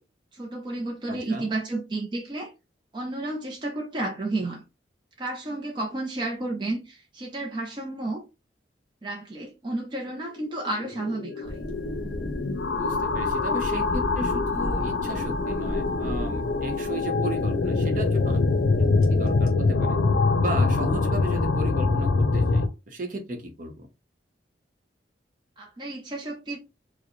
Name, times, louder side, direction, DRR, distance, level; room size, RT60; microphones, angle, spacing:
voice 1, 0.3-2.5 2.9-4.6 5.2-8.2 9.0-11.6 25.6-26.6, right 2 dB, 25° right, 0.5 m, -32 dB
voice 2, 1.1-1.5 12.7-18.4 19.1-20.0 20.4-23.9, equal, 45° right, 0.9 m, -35 dB
sound 1, 10.4-22.7, left 3 dB, 90° left, 0.5 m, -24 dB
sound 2, 11.4-19.5, equal, 20° left, 1.4 m, -35 dB
4.6 x 2.1 x 3.0 m
head